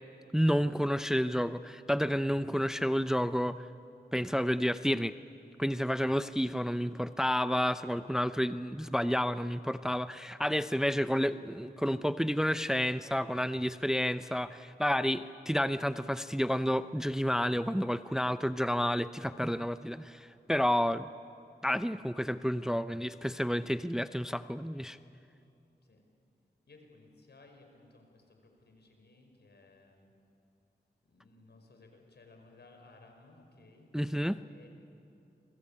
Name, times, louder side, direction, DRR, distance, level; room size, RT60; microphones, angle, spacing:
voice 1, 0.3-3.7 4.1-5.1 5.6-21.1 21.6-25.0 33.9-34.4, equal, 5° right, 12 dB, 0.7 m, -30 dB
voice 2, 26.7-30.1 31.0-33.9 34.4-34.7, left 3 dB, 70° left, 4 dB, 5.1 m, -59 dB
27.5 x 23.5 x 8.7 m, 2.7 s
cardioid pair, 55°, 18 cm